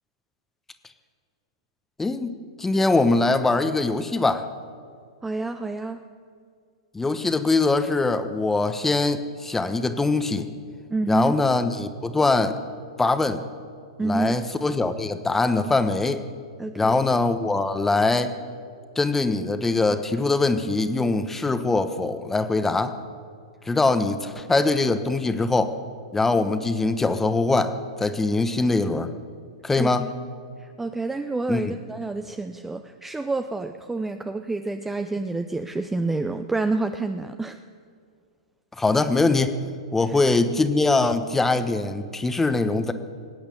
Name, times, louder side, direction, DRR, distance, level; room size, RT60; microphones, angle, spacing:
voice 1, 2.0-2.3 2.6-4.5 6.9-10.5 11.1-12.6 13.0-13.4 14.0-16.2 16.7-18.3 19.0-22.9 23.7-25.7 26.1-29.1 29.6-30.0 31.5-31.8 38.8-39.6 39.9-42.9, left 3 dB, 10° left, 10 dB, 1.0 m, -22 dB
voice 2, 5.2-6.0 10.9-11.4 14.0-14.4 16.6-17.0 23.7-23.8 29.8-30.1 30.6-37.6 40.1-40.2, right 3 dB, 10° right, 8 dB, 0.6 m, -28 dB
19.0 x 8.7 x 8.5 m, 2.1 s
hypercardioid pair, 110°, 3 cm